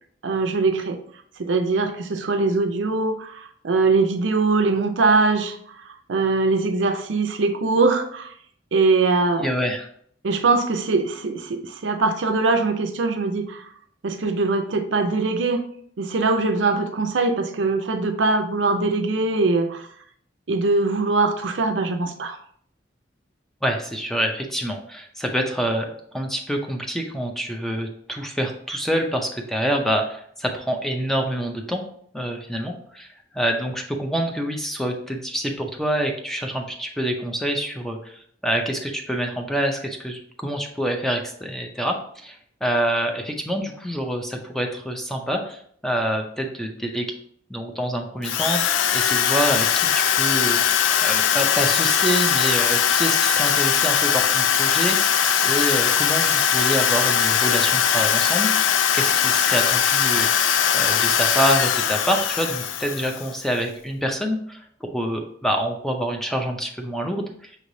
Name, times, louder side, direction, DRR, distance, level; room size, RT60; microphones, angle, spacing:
voice 1, 0.2-1.0 1.4-5.8 6.1-8.3 8.7-9.5 10.2-13.6 14.0-15.6 16.0-19.8 20.5-22.4, right 3 dB, 80° right, 6 dB, 0.6 m, -22 dB
voice 2, 9.4-9.9 23.6-31.8 32.1-33.1 33.3-47.2 47.5-50.7 51.0-60.3 60.7-67.6, equal, ahead, 2 dB, 0.5 m, -26 dB
Drill, 48.2-63.4, left 8 dB, 80° left, 0.3 m, -20 dB
5.8 x 3.2 x 2.7 m, 0.63 s
head